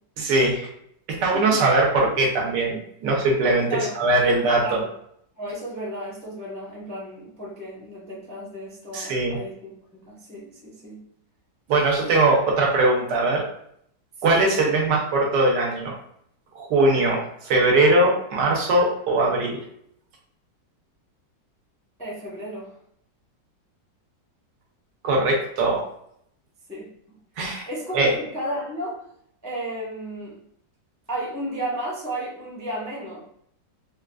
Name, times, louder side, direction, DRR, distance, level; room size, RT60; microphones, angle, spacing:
voice 1, 0.2-0.7 1.1-4.8 8.9-9.4 11.7-13.4 14.2-15.9 16.5-19.6 25.0-25.8 27.4-27.7 27.9-28.1, right 2 dB, 75° right, -1 dB, 1.3 m, -21 dB
voice 2, 5.4-11.0 14.3-14.4 22.0-22.7 26.7-26.9 27.5-29.0 29.4-30.3 31.1-33.2, right 1 dB, 5° left, -6 dB, 0.5 m, -33 dB
3.9 x 2.4 x 2.3 m, 0.70 s
omnidirectional pair, 2.0 m